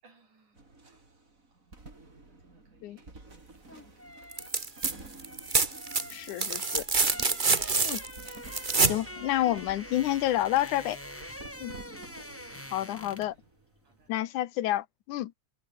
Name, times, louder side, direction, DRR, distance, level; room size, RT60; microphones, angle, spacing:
voice 1, 0.0-1.0 1.5-1.7 2.3-4.2 11.6-12.4 13.4-13.5 13.8-14.1, right 4 dB, 75° right, 8.3 m, -64 dB
sound 1, 0.5-14.1, right 2 dB, 25° right, 4.6 m, -51 dB
sound 2, 3.5-13.5 13.7-13.9, left 1 dB, 5° left, 2.2 m, -45 dB
sound 3, 4.3-4.9 5.2-9.0 10.7-10.8, right 4 dB, 40° right, 0.6 m, -27 dB
voice 2, 6.1-6.8 7.8-8.0 8.8-11.0 11.6-11.8 12.7-13.4 14.1-15.3, left 14 dB, 80° left, 2.4 m, -29 dB
omnidirectional pair, 3.5 m